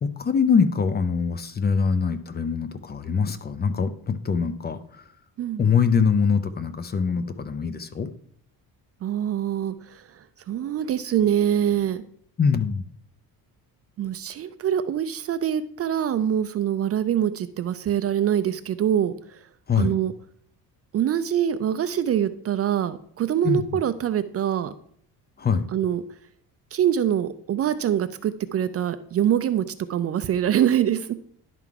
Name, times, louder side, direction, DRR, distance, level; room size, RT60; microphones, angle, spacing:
voice 1, 0.0-5.0 5.6-8.1 12.4-12.8 19.7-19.9 23.4-23.8 25.4-25.6, left 6 dB, 25° left, 11 dB, 0.5 m, -23 dB
voice 2, 9.0-10.0 10.5-12.0 14.0-19.4 19.8-20.1 20.9-24.7 25.7-26.0 26.7-31.1, right 10 dB, 40° right, 12 dB, 0.4 m, -24 dB
11.0 x 3.7 x 4.6 m, 0.62 s
cardioid pair, 125°, 38 cm